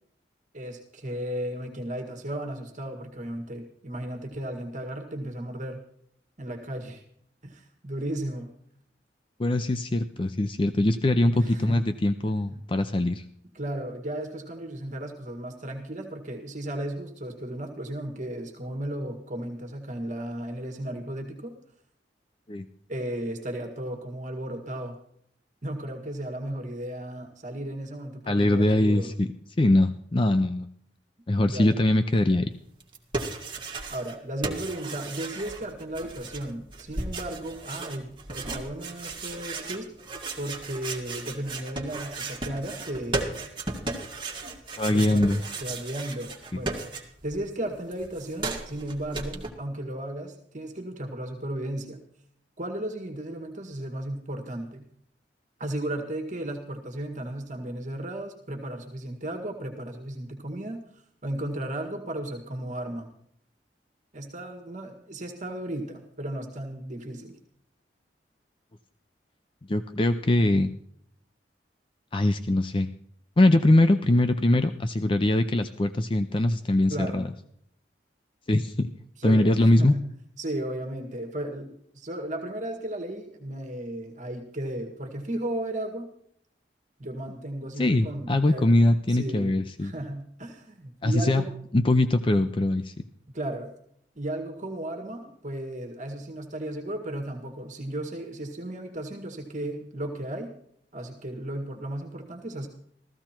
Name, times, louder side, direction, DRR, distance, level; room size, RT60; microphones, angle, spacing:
voice 1, 0.5-5.8 6.4-7.0 7.4-8.5 11.3-11.8 12.5-12.6 13.5-21.6 22.9-25.0 25.6-29.1 31.4-31.8 33.9-39.9 40.4-43.3 44.9-45.3 45.6-46.8 47.2-52.0 52.6-54.8 55.6-60.8 61.2-63.1 64.1-67.4 76.9-77.3 79.2-80.1 80.4-86.1 87.0-88.7 89.1-89.5 89.8-91.5 93.3-93.7 94.2-100.5 100.9-102.7, right 1 dB, 45° right, 3 dB, 1.8 m, -35 dB
voice 2, 9.4-13.2 22.5-22.7 28.3-29.3 29.6-30.7 31.3-32.5 44.8-45.4 46.5-46.6 69.7-70.7 72.1-72.9 73.4-77.3 78.5-78.9 79.2-79.9 87.8-89.9 91.0-91.4 91.7-92.9, left 1 dB, 30° left, 9 dB, 0.5 m, -22 dB
sound 1, 32.8-34.2 34.4-47.4 47.6-49.5, right 3 dB, 30° right, 2.1 m, -35 dB
15.0 x 15.0 x 4.4 m, 0.67 s
head